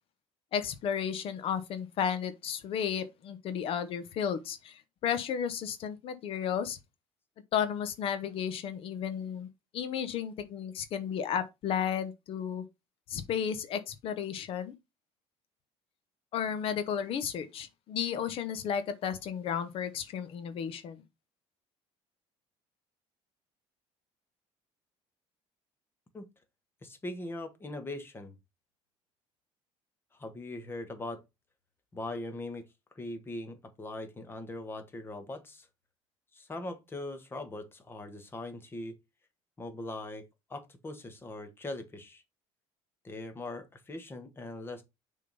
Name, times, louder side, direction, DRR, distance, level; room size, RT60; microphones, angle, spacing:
voice 1, 0.5-6.8 7.5-9.5 9.7-12.6 13.1-14.7 16.3-21.0, left 8 dB, 55° left, 1.0 m, -33 dB
voice 2, 26.8-28.3 30.1-31.2 31.9-32.6 32.9-35.7 36.3-38.9 39.6-40.2 40.5-42.2 43.0-44.8, left 2 dB, 20° left, 1.5 m, -40 dB
6.8 x 3.8 x 5.2 m
cardioid pair, 135°, 11 cm